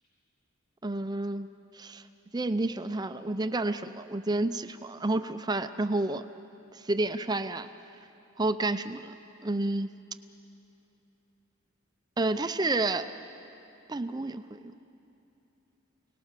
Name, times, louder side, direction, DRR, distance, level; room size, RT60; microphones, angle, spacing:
voice 1, 0.8-1.5 1.7-2.0 2.3-6.2 6.7-7.7 8.4-9.1 9.4-9.9 12.2-13.1 13.9-14.6, right 2 dB, 20° right, 10 dB, 0.5 m, -30 dB
29.0 x 19.0 x 6.7 m, 2.9 s
head